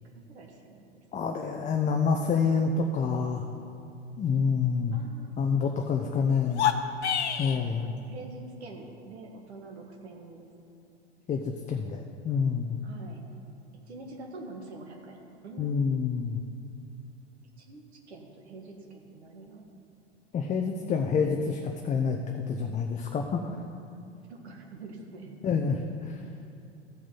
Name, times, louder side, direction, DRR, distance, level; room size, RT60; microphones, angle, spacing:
voice 1, 0.1-1.8 4.9-6.6 7.8-10.5 12.8-13.3 13.9-16.1 17.6-19.7 20.9-21.3 24.3-25.3, right 2 dB, 80° right, 2 dB, 1.6 m, -46 dB
voice 2, 1.1-3.5 4.2-5.0 5.4-6.7 7.4-7.9 11.3-12.8 15.6-16.4 20.3-23.5 25.4-26.2, left 5 dB, 20° left, 3 dB, 0.6 m, -27 dB
sound 1, 6.4-7.6, left 9 dB, 80° left, 0.7 m, -27 dB
14.5 x 5.0 x 5.5 m, 2.5 s
hypercardioid pair, 90°, 33 cm